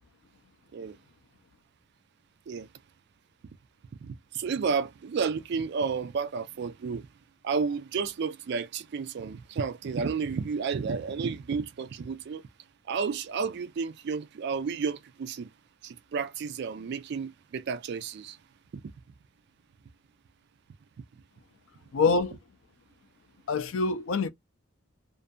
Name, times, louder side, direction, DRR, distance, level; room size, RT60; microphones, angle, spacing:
voice 1, 4.0-7.1 7.4-12.4 12.9-15.5 15.8-18.4 18.7-18.8, right 5 dB, 50° right, 0.3 m, -31 dB
voice 2, 21.9-22.4 23.5-24.3, left 4 dB, 65° left, 0.4 m, -25 dB
2.5 x 2.4 x 2.2 m
head